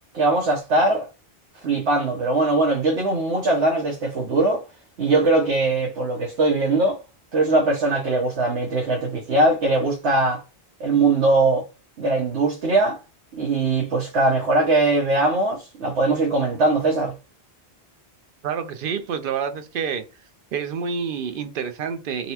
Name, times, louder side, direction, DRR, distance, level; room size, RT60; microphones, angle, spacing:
voice 1, 0.1-1.1 1.6-4.6 5.0-7.0 7.3-10.4 10.8-11.7 12.0-13.0 13.3-17.1, right 2 dB, 85° right, 1.1 m, -21 dB
voice 2, 18.4-20.0 20.5-22.3, right 6 dB, 60° right, 0.7 m, -28 dB
4.0 x 2.1 x 2.8 m
omnidirectional pair, 1.1 m